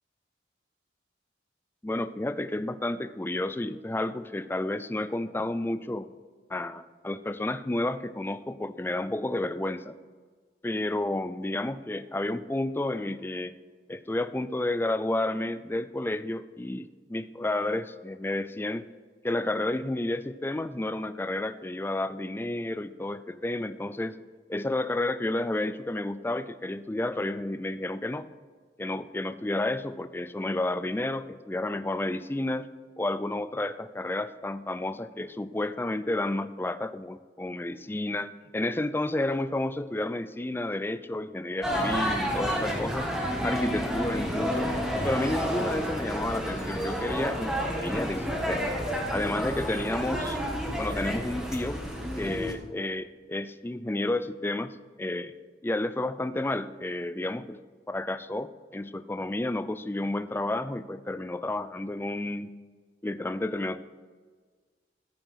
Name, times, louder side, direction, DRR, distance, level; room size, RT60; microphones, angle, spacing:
voice 1, 1.8-6.1 6.5-10.0 10.6-13.5 13.9-18.9 19.2-24.2 24.5-28.3 28.8-32.7 33.0-43.1 43.4-44.7 45.0-48.7 49.1-50.4 50.8-51.8 52.2-55.3 55.6-57.6 57.9-62.5 63.0-63.8, left 1 dB, 10° left, 13 dB, 0.4 m, -31 dB
sound 1, 41.6-52.5, equal, 5° right, 1.5 m, -30 dB
14.5 x 5.3 x 5.7 m, 1.5 s
head